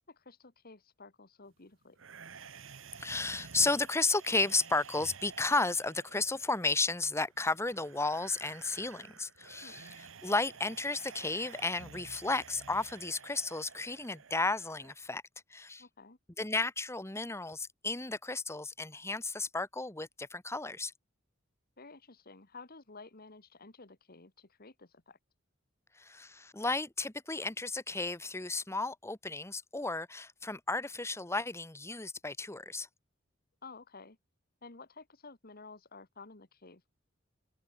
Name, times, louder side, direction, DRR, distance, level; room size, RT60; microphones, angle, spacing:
voice 1, 0.0-2.0 9.6-9.8 15.8-16.2 21.8-25.2 33.6-34.2 34.6-36.9, left 3 dB, 50° left, 2.0 m, -52 dB
sound 1, 2.0-14.9, right 6 dB, 70° right, 1.2 m, -52 dB
voice 2, 3.0-15.2 15.5-15.8 16.4-20.9 26.0-32.9, left 3 dB, 15° left, 1.3 m, -33 dB
head